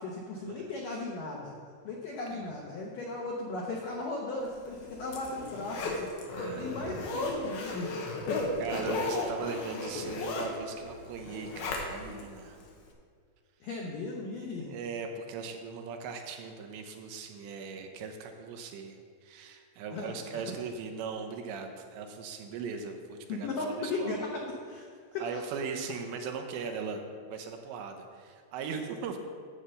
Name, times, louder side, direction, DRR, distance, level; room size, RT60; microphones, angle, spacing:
voice 1, 0.0-1.5 1.8-7.9 8.3-8.4 8.8-8.9 13.6-14.7 19.9-20.2 23.3-24.9 25.1-25.4, left 3 dB, 85° left, -1 dB, 1.9 m, -37 dB
Zipper (clothing), 4.6-12.2 12.6-12.7, left 2 dB, 70° left, 2.6 m, -35 dB
voice 2, 6.4-7.0 8.6-12.6 14.7-19.0 19.2-24.3 25.2-27.0 27.3-29.2, right 5 dB, 80° right, 5 dB, 2.9 m, -39 dB
10.0 x 5.5 x 7.6 m, 2.1 s
omnidirectional pair, 5.3 m